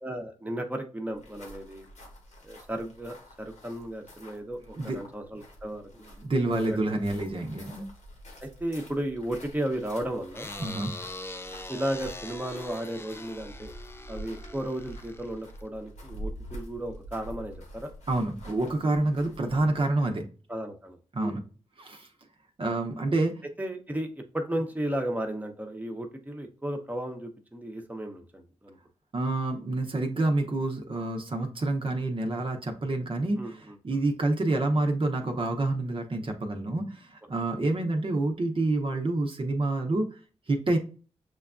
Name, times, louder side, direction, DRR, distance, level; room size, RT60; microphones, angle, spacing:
voice 1, 0.0-1.9 2.4-5.9 6.7-7.0 7.7-7.9 8.4-10.5 11.7-13.7 14.1-17.5 17.8-17.9 20.5-21.4 23.6-28.8 33.4-34.0, right 1 dB, 15° right, 3 dB, 0.9 m, -34 dB
sound 1, 1.1-20.0, equal, 75° left, 1.1 m, -47 dB
voice 2, 6.2-7.8 10.6-10.9 18.1-20.2 21.1-21.4 21.8-22.1 22.6-23.4 29.1-40.1 40.5-40.8, right 2 dB, 45° right, 3 dB, 0.8 m, -28 dB
sound 2, 10.3-15.7, left 2 dB, 20° left, 0.4 m, -42 dB
6.2 x 2.2 x 2.5 m, 0.37 s
cardioid pair, 45°, 12 cm